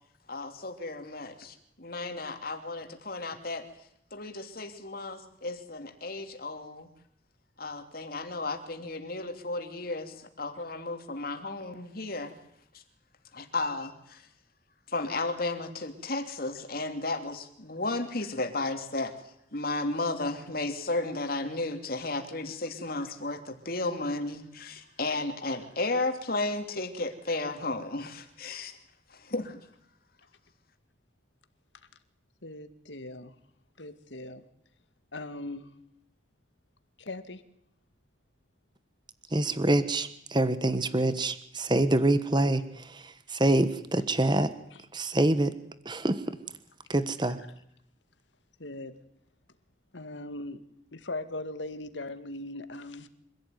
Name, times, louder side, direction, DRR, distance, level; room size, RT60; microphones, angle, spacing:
voice 1, 0.3-3.6 4.1-6.9 7.6-12.3 12.7-12.8 13.3-14.3 14.9-19.1 19.5-28.8 29.1-29.6, left 2 dB, 55° left, 3.0 m, -34 dB
voice 2, 32.4-33.3 33.8-34.4 35.1-35.7 37.0-37.4 44.7-44.8 48.6-49.0 49.9-50.6 50.9-53.1, left 2 dB, 90° left, 2.2 m, -39 dB
voice 3, 39.3-44.5 44.9-45.5 45.8-46.2 46.9-47.4, right 1 dB, 25° right, 1.3 m, -26 dB
26.0 x 16.0 x 9.6 m
head